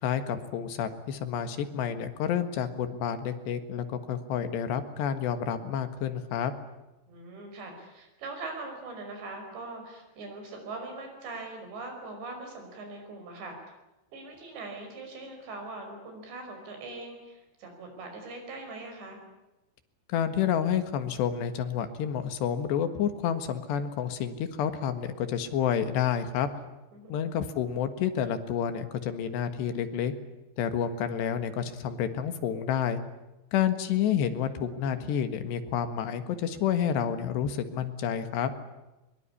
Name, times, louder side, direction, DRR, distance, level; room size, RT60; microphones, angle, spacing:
voice 1, 0.0-6.5 20.1-26.5 27.1-30.1 30.6-33.0 33.5-38.5, left 8 dB, 70° left, 9 dB, 3.6 m, -29 dB
voice 2, 7.1-13.6 14.1-19.2 26.9-27.2, right 3 dB, 65° right, 4 dB, 7.6 m, -41 dB
22.5 x 22.0 x 9.9 m, 1.0 s
omnidirectional pair, 5.5 m